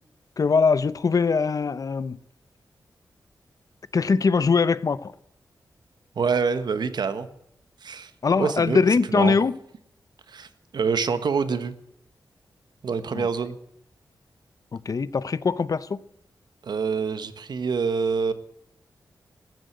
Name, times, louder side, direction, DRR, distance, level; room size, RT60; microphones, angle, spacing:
voice 1, 0.4-2.2 3.9-5.1 8.2-9.5 13.1-13.3 14.7-16.0, left 5 dB, 55° left, 0.7 m, -22 dB
voice 2, 6.2-7.3 7.8-8.1 8.4-8.8 9.1-9.4 10.3-10.5 10.7-11.7 12.8-13.6 16.6-18.3, right 5 dB, 70° right, 1.2 m, -26 dB
15.0 x 7.8 x 9.2 m
cardioid pair, 70°, 7 cm